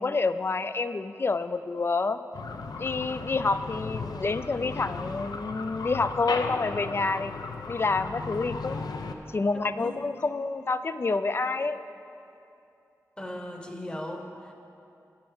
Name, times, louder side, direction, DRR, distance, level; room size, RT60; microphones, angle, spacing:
voice 1, 0.0-2.2 2.8-7.3 7.7-9.0 9.3-11.8, left 3 dB, 35° left, 12 dB, 0.3 m, -28 dB
sound 1, 2.3-9.2, left 4 dB, 80° left, 0.6 m, -36 dB
voice 2, 9.5-10.1 13.2-14.5, left 1 dB, 15° left, 4 dB, 1.0 m, -38 dB
9.4 x 8.5 x 6.1 m, 2.7 s
wide cardioid pair, 110°, 7 cm